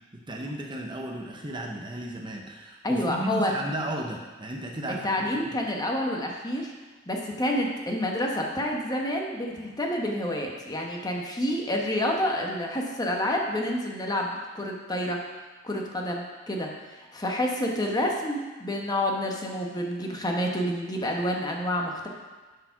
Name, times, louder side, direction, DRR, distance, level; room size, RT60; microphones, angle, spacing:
voice 1, 0.3-5.4, right 1 dB, 25° right, 1 dB, 0.8 m, -34 dB
voice 2, 2.8-3.5 5.0-6.7 7.1-15.2 15.6-16.7 17.1-22.1, left 1 dB, 20° left, 0 dB, 1.1 m, -28 dB
9.5 x 4.9 x 5.8 m, 1.3 s
head